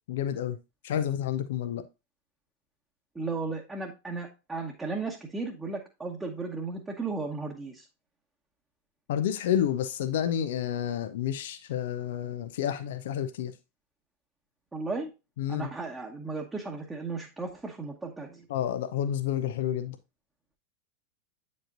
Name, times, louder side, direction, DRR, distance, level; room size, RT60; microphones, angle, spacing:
voice 1, 0.1-0.6 0.8-1.8 9.1-13.5 15.4-15.7 18.5-20.0, left 10 dB, 55° left, 0.6 m, -30 dB
voice 2, 3.1-7.9 14.7-15.1 15.5-18.5, right 3 dB, 10° right, 1.1 m, -35 dB
8.6 x 5.4 x 2.6 m
figure-of-eight pair, 90°, 0 cm